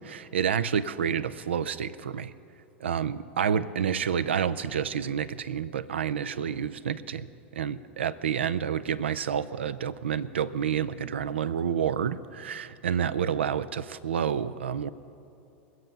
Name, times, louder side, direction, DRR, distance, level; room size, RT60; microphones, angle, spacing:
voice 1, 0.0-2.3 2.8-7.3 7.5-14.9, right 8 dB, 75° right, 15 dB, 0.5 m, -29 dB
22.5 x 7.9 x 5.4 m, 2.9 s
figure-of-eight pair, 85°, 6 cm